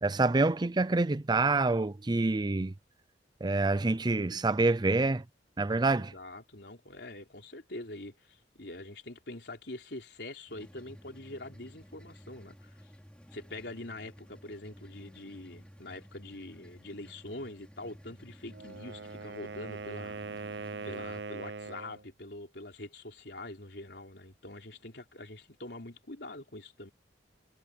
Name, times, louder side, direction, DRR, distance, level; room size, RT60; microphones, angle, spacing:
voice 1, 0.0-2.7 3.4-5.2 5.6-6.1, right 3 dB, 25° right, 0.5 m, -27 dB
voice 2, 6.0-12.9 13.3-20.2 20.8-26.9, left 2 dB, 65° left, 4.1 m, -44 dB
sound 1, 10.5-21.2, equal, 5° left, 4.1 m, -53 dB
Wind instrument woodwind instrument, 18.5-22.0, right 4 dB, 70° right, 0.7 m, -41 dB
head